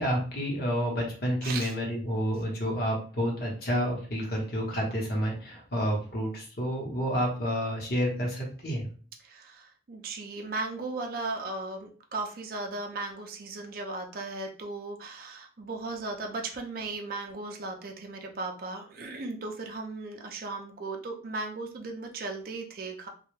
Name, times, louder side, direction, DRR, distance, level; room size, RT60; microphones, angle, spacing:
voice 1, 0.0-8.8, equal, 50° left, -2 dB, 0.9 m, -29 dB
voice 2, 1.4-1.8 9.2-23.1, right 3 dB, 50° right, 3 dB, 0.4 m, -36 dB
2.3 x 2.1 x 3.1 m, 0.41 s
head